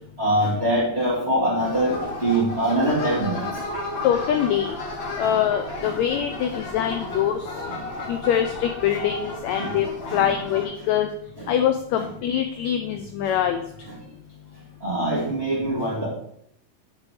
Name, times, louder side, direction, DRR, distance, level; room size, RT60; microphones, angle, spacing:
voice 1, 0.2-3.5 5.2-5.3 5.8-5.9 7.7-7.9 9.5-9.8 10.1-10.2 11.4-11.5 12.0-12.1 13.2-13.3 13.9-14.0 14.8-16.1, right 1 dB, 20° right, -7 dB, 2.1 m, -24 dB
sound 1, 1.6-10.7, left 2 dB, 45° left, 1.8 m, -33 dB
voice 2, 4.0-4.7 5.2-7.4 8.1-9.9 10.1-11.1 11.5-13.6, left 10 dB, 85° left, 7 dB, 1.6 m, -23 dB
8.6 x 3.8 x 4.9 m, 0.71 s
omnidirectional pair, 3.7 m